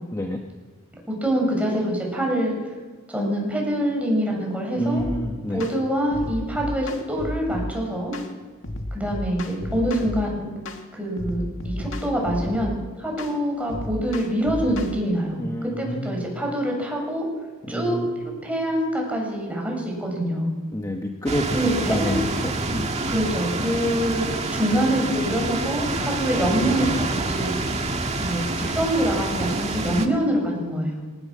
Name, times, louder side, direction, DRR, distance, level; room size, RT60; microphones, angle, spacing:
voice 1, 0.1-0.4 4.8-5.6 15.4-16.3 17.6-18.1 20.7-22.9, equal, 15° left, 2 dB, 1.5 m, -28 dB
voice 2, 1.1-2.6 3.1-5.0 5.5-8.2 8.9-10.5 10.9-17.3 17.7-18.0 18.4-20.5 21.5-22.2 23.1-27.6 28.2-31.0, equal, 5° right, -1 dB, 7.4 m, -25 dB
sound 1, 5.0-5.2 5.6-5.8 6.1-7.7 8.1-8.3 8.6-10.2 10.7-10.8 11.2-12.8 13.2-13.4 13.7-14.9, left 1 dB, 65° left, 2.3 m, -32 dB
sound 2, 21.3-30.1, right 2 dB, 30° right, 2.0 m, -27 dB
23.0 x 18.5 x 7.4 m, 1.3 s
head